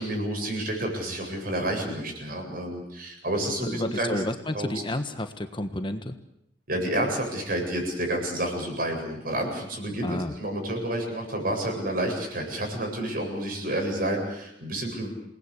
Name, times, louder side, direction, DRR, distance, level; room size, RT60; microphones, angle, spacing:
voice 1, 0.0-4.2 4.5-4.7 6.7-15.1, right 1 dB, 55° right, 2 dB, 7.8 m, -29 dB
voice 2, 3.6-6.1 10.0-10.3, left 1 dB, 25° left, 8 dB, 1.4 m, -31 dB
28.5 x 19.5 x 8.3 m, 0.77 s
head